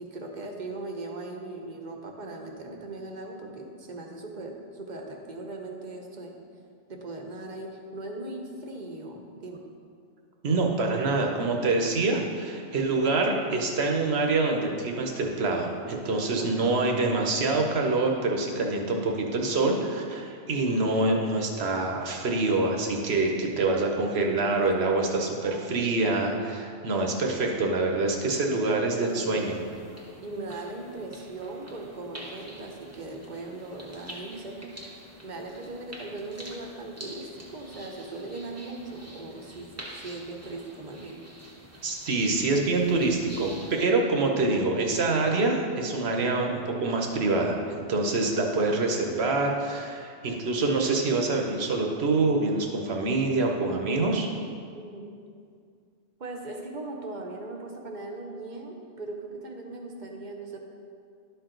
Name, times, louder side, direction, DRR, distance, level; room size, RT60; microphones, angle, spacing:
voice 1, 0.0-6.3 6.9-9.6 16.4-16.5 19.9-20.0 24.5-24.6 25.4-26.1 27.5-27.8 29.0-29.4 30.2-39.7 40.0-41.2 43.5-44.0 54.7-55.2 56.2-60.6, right 2 dB, 45° right, 1 dB, 0.9 m, -39 dB
voice 2, 10.4-20.2 20.5-29.6 41.8-47.6 47.9-54.3, right 3 dB, 70° right, 1 dB, 1.2 m, -26 dB
sound 1, 29.0-43.9, right 1 dB, 15° right, 0.9 m, -47 dB
12.0 x 4.6 x 3.8 m, 2.3 s
omnidirectional pair, 1.2 m